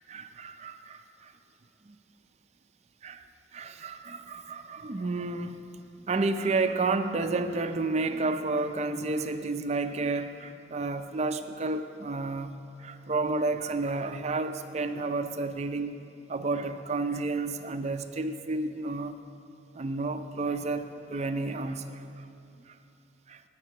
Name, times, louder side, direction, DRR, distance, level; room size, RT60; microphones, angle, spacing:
voice 1, 0.1-1.3 1.9-2.0 3.0-5.6 6.0-12.5 12.8-16.0 16.3-19.2 19.7-22.3 22.7-22.8 23.3-23.4, right 3 dB, 35° right, 9 dB, 0.4 m, -31 dB
9.1 x 6.6 x 8.6 m, 2.6 s
head